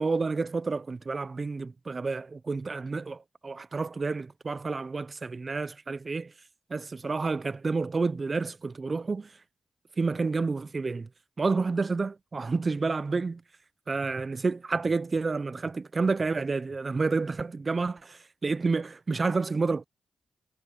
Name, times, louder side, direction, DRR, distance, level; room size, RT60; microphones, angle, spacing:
voice 1, 0.0-6.3 6.7-9.3 10.0-11.1 11.4-13.4 13.9-19.8, right 4 dB, 45° right, 0.8 m, -29 dB
supercardioid pair, 40°, 0 cm